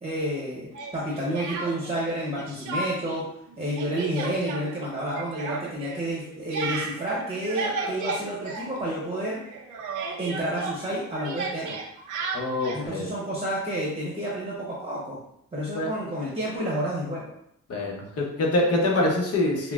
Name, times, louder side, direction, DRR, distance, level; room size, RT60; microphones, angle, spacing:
voice 1, 0.0-3.2 3.6-9.4 10.2-11.8 12.7-15.2 15.5-17.3, right 1 dB, 20° right, -6 dB, 0.8 m, -30 dB
Speech, 0.7-2.1 2.4-3.2 3.5-9.2 9.4-12.9, right 3 dB, 85° right, 0.6 m, -34 dB
voice 2, 12.3-13.1 15.7-15.9 17.7-19.7, left 1 dB, 55° left, -1 dB, 0.9 m, -25 dB
5.5 x 2.1 x 2.4 m, 0.74 s
wide cardioid pair, 130°, 30 cm